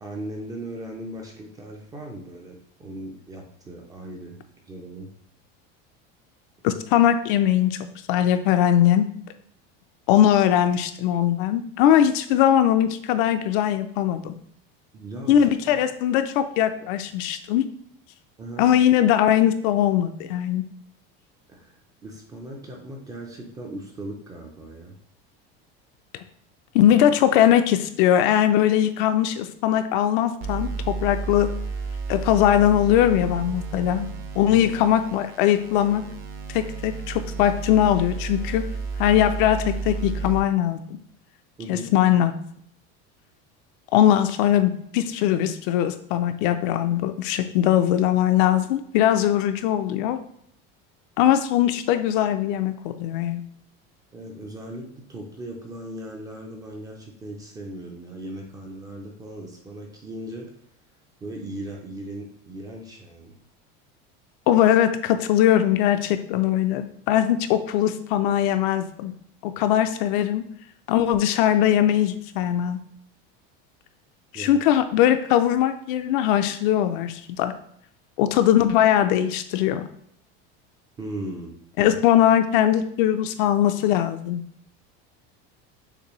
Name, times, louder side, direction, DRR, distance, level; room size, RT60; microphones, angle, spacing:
voice 1, 0.0-4.4 4.7-5.1 14.9-15.5 18.4-18.7 21.5-25.0 34.5-34.8 41.6-41.9 54.1-60.5 61.2-63.4 74.3-74.6 81.0-81.6 81.9-82.0, right 1 dB, 10° right, 1 dB, 0.4 m, -38 dB
voice 2, 6.6-7.8 8.1-9.1 10.1-14.3 15.3-17.6 18.6-20.6 26.7-31.5 32.1-34.1 34.4-36.0 36.5-38.6 39.0-40.8 41.7-42.3 43.9-50.2 51.2-53.4 64.5-69.1 69.4-70.4 70.9-72.8 74.3-77.5 78.2-79.9 81.8-84.4, left 11 dB, 60° left, 9 dB, 0.4 m, -20 dB
sound 1, 30.4-40.4, right 5 dB, 45° right, 0.7 m, -32 dB
6.6 x 2.6 x 3.0 m, 0.68 s
cardioid pair, 175°, 30 cm